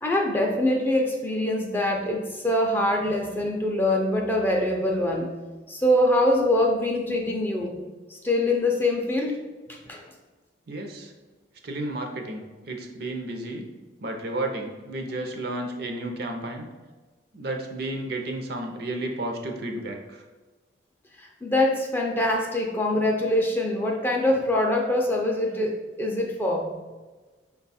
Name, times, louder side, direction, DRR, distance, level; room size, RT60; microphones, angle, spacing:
voice 1, 0.0-5.3 5.7-7.8 8.1-9.4 9.7-10.0 21.2-26.7, left 1 dB, 10° left, 0 dB, 0.4 m, -24 dB
voice 2, 10.7-11.1 11.6-13.7 14.0-16.7 17.3-20.2, right 1 dB, 55° right, 3 dB, 0.6 m, -32 dB
5.4 x 2.3 x 4.1 m, 1.3 s
head